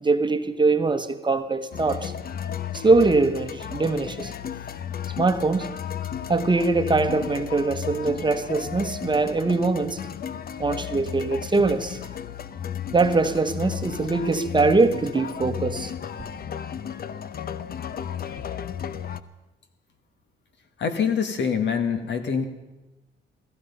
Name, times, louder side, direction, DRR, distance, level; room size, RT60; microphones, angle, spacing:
voice 1, 0.0-2.1 2.7-4.3 5.1-5.7 6.3-10.0 10.6-12.1 12.9-15.9, right 3 dB, 25° right, 8 dB, 1.1 m, -22 dB
sound 1, 1.7-19.2, left 9 dB, 50° left, 0.8 m, -34 dB
voice 2, 20.8-22.5, left 6 dB, 65° left, 7 dB, 2.0 m, -25 dB
17.0 x 15.0 x 5.5 m, 1.0 s
cardioid pair, 90°, 20 cm